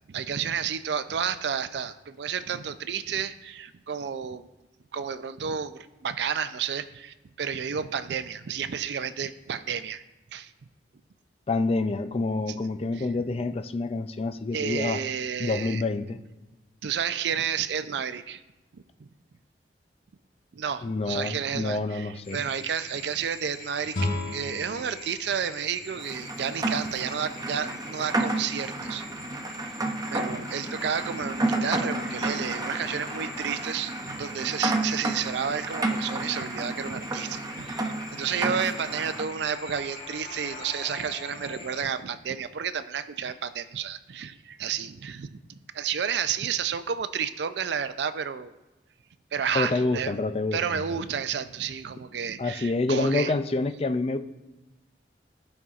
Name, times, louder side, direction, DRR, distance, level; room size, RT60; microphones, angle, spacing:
voice 1, 0.1-4.5 4.9-10.0 10.3-10.5 12.9-13.1 14.5-15.8 16.8-18.4 18.7-19.1 20.5-29.3 30.1-48.5 49.3-50.1 50.5-53.3, right 7 dB, 65° right, 12 dB, 0.4 m, -31 dB
voice 2, 11.5-15.0 15.4-16.2 20.8-22.4 49.5-51.0 52.4-54.2, left 3 dB, 35° left, 10 dB, 0.4 m, -27 dB
sound 1, 22.2-41.8, left 3 dB, 55° left, 2.1 m, -44 dB
sound 2, 23.9-26.9, left 2 dB, 80° left, 2.0 m, -35 dB
Rain, 26.0-39.3, right 2 dB, 20° right, 0.6 m, -31 dB
14.5 x 5.4 x 2.4 m, 1.1 s
head